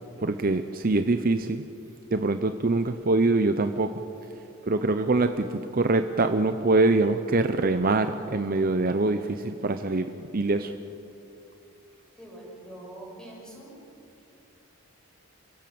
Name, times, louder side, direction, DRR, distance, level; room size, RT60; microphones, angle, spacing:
voice 1, 0.2-1.6 2.1-3.9 4.7-10.7, right 2 dB, 40° right, 8 dB, 0.7 m, -24 dB
voice 2, 12.2-13.7, right 1 dB, 5° left, -4 dB, 6.8 m, -44 dB
29.5 x 16.5 x 7.7 m, 2.9 s
head